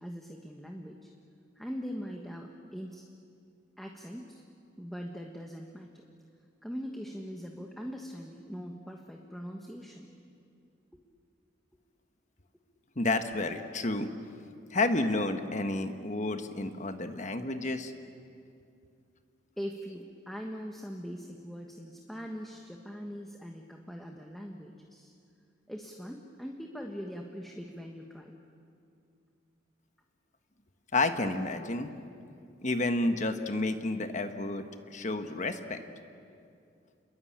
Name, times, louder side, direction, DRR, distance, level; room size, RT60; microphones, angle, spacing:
voice 1, 0.0-1.1 1.6-3.0 3.8-4.4 4.8-6.1 6.6-10.1 19.6-25.1 25.7-28.3, equal, ahead, 1 dB, 1.4 m, -41 dB
voice 2, 13.0-14.1 14.7-17.9 30.9-31.9 32.6-34.6 34.9-35.8, left 2 dB, 40° left, 7 dB, 1.3 m, -30 dB
29.5 x 22.0 x 8.7 m, 2.5 s
head